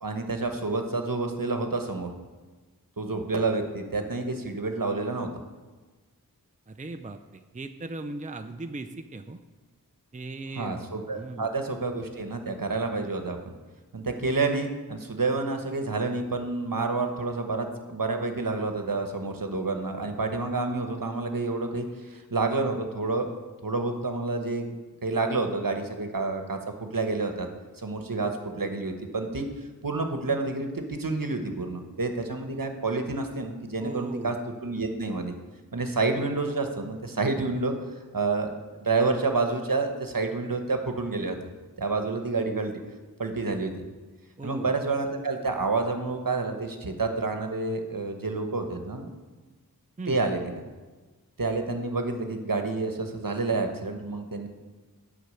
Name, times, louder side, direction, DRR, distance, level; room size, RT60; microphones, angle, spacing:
voice 1, 0.0-2.1 3.0-5.3 10.6-13.4 13.9-23.3 23.6-27.5 27.8-29.5 29.8-34.3 34.6-35.3 35.7-37.7 38.1-41.3 41.8-42.8 43.2-43.7 44.4-49.1 50.1-50.5 51.4-54.5, right 3 dB, 65° right, 5 dB, 1.1 m, -29 dB
voice 2, 6.7-9.4 10.1-10.8 11.1-11.5 33.8-34.4 44.4-44.7 50.0-50.2, right 2 dB, 20° right, 7 dB, 0.5 m, -38 dB
8.2 x 5.8 x 7.6 m, 1.3 s
wide cardioid pair, 40°, 36 cm